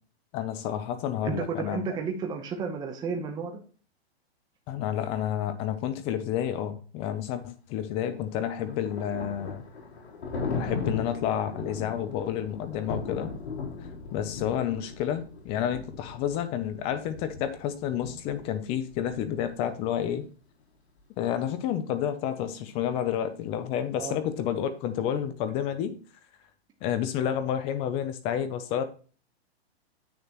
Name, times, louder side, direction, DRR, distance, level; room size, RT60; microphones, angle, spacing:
voice 1, 0.3-1.9 4.7-9.6 10.6-13.3 14.1-20.3 21.2-26.0 26.8-28.8, left 10 dB, 20° left, 0.5 m, -30 dB
voice 2, 1.2-3.6 23.9-24.2, right 5 dB, 10° right, 0.9 m, -32 dB
Thunder, 8.1-19.9, left 4 dB, 80° left, 3.6 m, -38 dB
8.6 x 6.8 x 2.9 m
hypercardioid pair, 150°, 32 cm